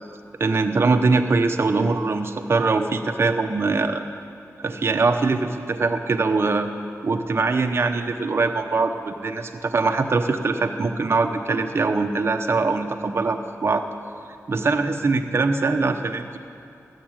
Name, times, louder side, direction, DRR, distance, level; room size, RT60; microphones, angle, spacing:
voice 1, 0.4-4.0 4.6-6.7 7.0-13.8 14.5-16.4, right 3 dB, 45° right, 5 dB, 0.8 m, -22 dB
13.5 x 7.9 x 8.7 m, 2.7 s
wide cardioid pair, 115°, 6 cm